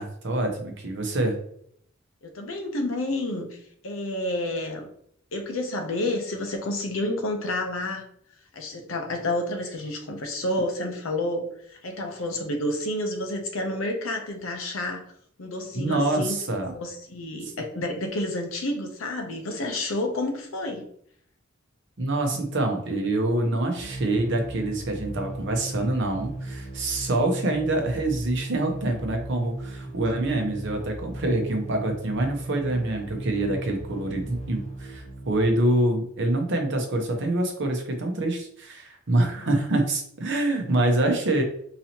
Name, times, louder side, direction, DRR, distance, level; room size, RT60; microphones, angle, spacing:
voice 1, 0.0-1.4 15.7-16.7 22.0-41.4, right 2 dB, 60° right, 4 dB, 0.8 m, -26 dB
voice 2, 2.2-3.6 3.8-4.9 5.3-8.0 8.5-15.0 15.4-16.4 16.7-20.8 39.3-39.6 40.5-40.6, left 1 dB, 80° left, 4 dB, 0.7 m, -30 dB
sound 1, 23.8-35.7, right 1 dB, 35° left, 0.6 m, -37 dB
4.0 x 2.7 x 2.9 m, 0.67 s
head